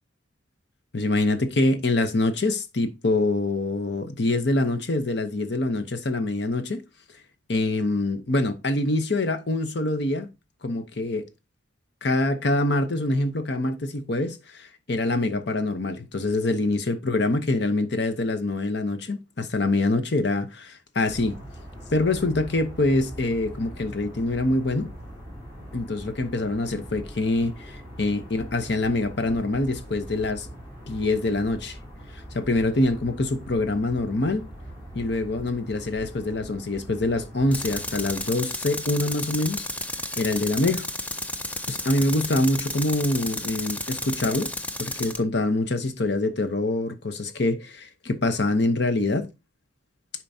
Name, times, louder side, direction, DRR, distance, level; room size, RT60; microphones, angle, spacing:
voice 1, 0.9-6.8 7.5-10.3 10.6-11.3 12.0-21.4 21.9-24.9 25.7-30.5 30.9-31.8 32.3-34.5 34.9-39.7 40.2-40.9 41.7-44.5 44.8-49.3, left 2 dB, 60° left, 0.9 m, -25 dB
sound 1, 21.1-38.2, equal, 25° left, 2.7 m, -42 dB
Tools, 37.5-45.2, left 2 dB, 10° left, 0.4 m, -32 dB
10.5 x 4.5 x 2.7 m
head